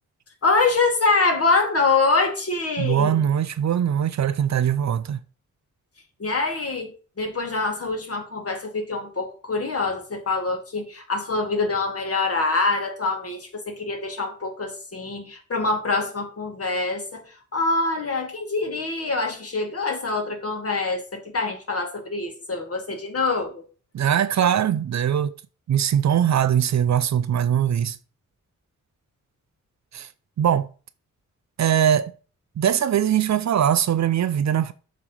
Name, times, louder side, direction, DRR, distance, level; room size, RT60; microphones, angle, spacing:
voice 1, 0.4-3.3 6.2-23.6, left 3 dB, 50° left, 2.0 m, -25 dB
voice 2, 2.8-5.2 23.9-25.3 25.7-28.0 29.9-30.1 30.4-30.7 31.6-32.1 32.6-34.7, right 9 dB, 60° right, 0.6 m, -21 dB
7.1 x 3.2 x 5.5 m
cardioid pair, 75°, 31 cm